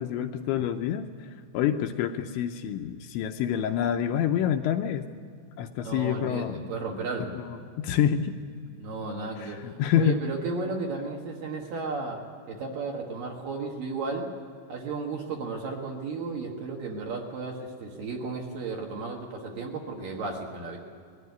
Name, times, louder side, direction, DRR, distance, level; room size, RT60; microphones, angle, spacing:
voice 1, 0.0-5.1 5.6-6.7 7.4-8.3 9.4-10.2, left 10 dB, 80° left, 5 dB, 2.8 m, -27 dB
voice 2, 5.8-7.3 8.8-12.2 12.5-14.3 14.7-20.8, right 4 dB, 60° right, 0 dB, 2.7 m, -34 dB
21.0 x 15.5 x 9.6 m, 2.4 s
omnidirectional pair, 5.7 m